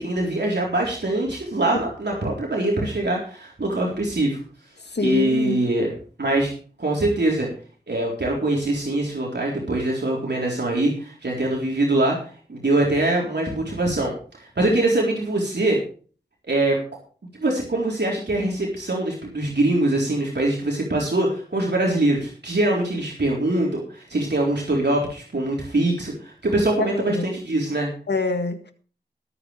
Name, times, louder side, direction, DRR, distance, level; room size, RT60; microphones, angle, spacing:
voice 1, 0.0-4.4 5.0-5.9 6.2-6.5 6.8-7.5 7.9-12.2 12.5-15.8 16.5-16.8 17.4-27.9, right 2 dB, 75° right, 4.0 m, -23 dB
voice 2, 4.9-5.6 26.8-27.2 28.1-28.7, left 3 dB, 75° left, 1.8 m, -25 dB
20.5 x 8.9 x 3.4 m
wide cardioid pair, 50°, 18 cm